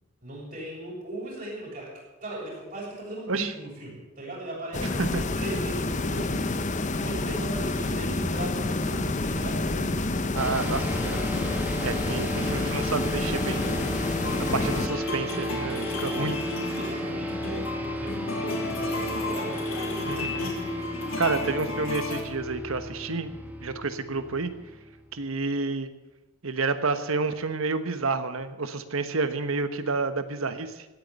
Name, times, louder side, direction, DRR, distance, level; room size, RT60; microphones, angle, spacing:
voice 1, 0.2-1.9 2.2-5.1 5.4-6.4 6.6-9.7 16.0-19.6, right 1 dB, 40° right, -4 dB, 7.5 m, -38 dB
sound 1, 4.7-14.9, left 2 dB, 35° left, 0.9 m, -28 dB
voice 2, 10.3-11.2 11.8-13.8 14.5-16.4 20.0-20.5 21.2-23.3 23.6-24.5 25.1-25.9 26.4-30.9, right 4 dB, 75° right, 11 dB, 1.2 m, -29 dB
sound 2, 10.4-25.2, equal, 10° right, 1.5 m, -35 dB
sound 3, 14.2-22.2, left 3 dB, 75° left, 3.4 m, -33 dB
16.5 x 9.5 x 8.2 m, 1.1 s
head